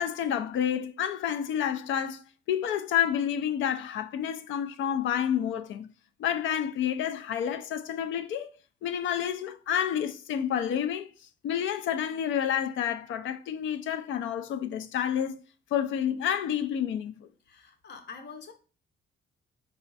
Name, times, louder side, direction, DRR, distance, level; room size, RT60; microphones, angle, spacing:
voice 1, 0.0-5.9 6.2-8.5 8.8-11.1 11.4-15.4 15.7-17.3, left 9 dB, 75° left, 0.4 m, -29 dB
voice 2, 17.5-18.5, left 5 dB, 60° left, 0.8 m, -45 dB
4.0 x 2.4 x 4.0 m
cardioid pair, 90°, 20 cm